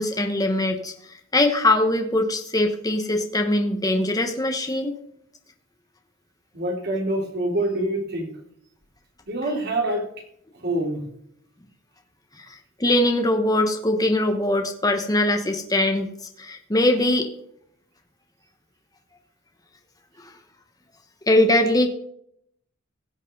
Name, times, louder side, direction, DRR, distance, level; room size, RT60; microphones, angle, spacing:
voice 1, 0.0-4.9 12.4-17.3 20.2-20.3 21.3-21.9, left 1 dB, 20° left, 5 dB, 1.1 m, -22 dB
voice 2, 6.5-8.3 9.3-10.1 10.6-11.0, right 1 dB, 55° right, 0 dB, 3.7 m, -25 dB
16.5 x 8.3 x 4.0 m, 0.70 s
head